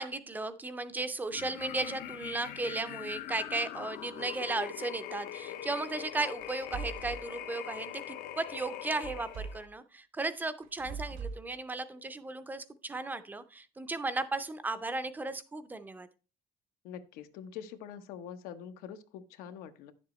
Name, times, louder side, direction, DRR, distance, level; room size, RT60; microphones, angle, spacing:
voice 1, 0.0-16.1, right 2 dB, 10° right, 11 dB, 0.5 m, -35 dB
sound 1, 1.3-9.7, left 12 dB, 70° left, 0.7 m, -42 dB
sound 2, 6.4-7.2 9.0-9.7 10.6-11.4, right 5 dB, 85° right, 1.0 m, -41 dB
voice 2, 16.8-19.9, left 8 dB, 90° left, 9 dB, 1.0 m, -45 dB
10.5 x 7.4 x 3.1 m, 0.34 s
cardioid pair, 175°, 15 cm